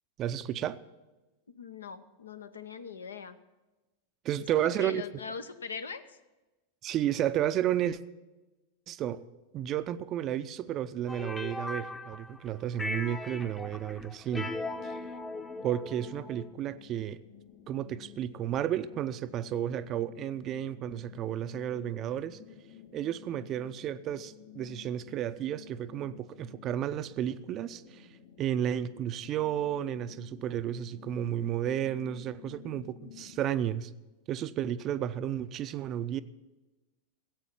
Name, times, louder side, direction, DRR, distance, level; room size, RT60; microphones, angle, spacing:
voice 1, 0.2-0.8 4.2-5.0 6.8-8.0 8.9-9.2 9.5-14.5 14.8-15.0 15.6-17.2 17.7-22.4 22.9-28.1 28.4-33.9 34.3-36.2, right 11 dB, 35° right, 0.5 m, -32 dB
voice 2, 1.5-3.4 4.6-6.2, left 5 dB, 70° left, 0.8 m, -41 dB
sound 1, 11.1-12.5 12.8-16.5, left 2 dB, 10° left, 0.8 m, -38 dB
sound 2, 14.5-33.4, left 10 dB, 50° left, 3.1 m, -53 dB
16.0 x 8.2 x 7.3 m
figure-of-eight pair, 90°, 0 cm